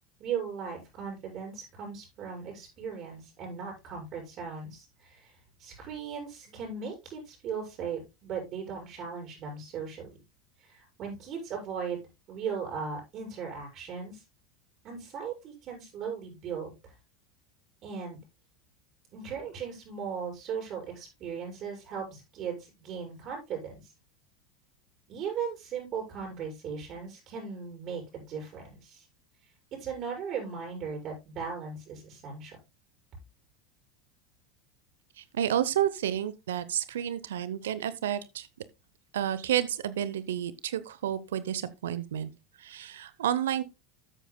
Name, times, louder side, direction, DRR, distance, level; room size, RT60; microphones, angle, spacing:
voice 1, 0.2-10.1 10.6-14.2 14.8-16.9 17.8-18.2 19.1-23.9 25.1-29.0 29.8-32.6, right 6 dB, 45° right, 6.2 m, -38 dB
voice 2, 35.2-38.5 39.1-42.3 42.6-43.6, right 10 dB, 80° right, 0.6 m, -30 dB
13.0 x 8.4 x 2.2 m
hypercardioid pair, 90°, 0 cm